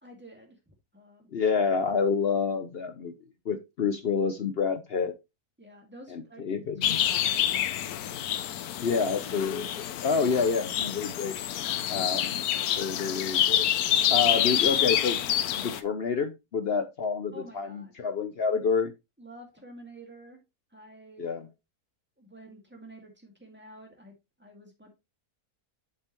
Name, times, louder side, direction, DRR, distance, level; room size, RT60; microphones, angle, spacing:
voice 1, 0.0-1.3 5.6-6.4 6.8-8.0 8.4-9.0 17.3-17.9 19.2-20.4 20.7-21.3 22.2-24.9, right 1 dB, 5° right, 2.0 m, -50 dB
voice 2, 1.3-3.1 3.5-5.1 6.1-7.0 8.8-11.4 11.9-12.4 12.8-13.7 14.1-15.2 15.6-18.9 21.2-21.5, left 5 dB, 55° left, 0.7 m, -28 dB
sound 1, 6.8-15.8, left 11 dB, 75° left, 1.1 m, -27 dB
8.1 x 5.4 x 3.0 m
omnidirectional pair, 1.6 m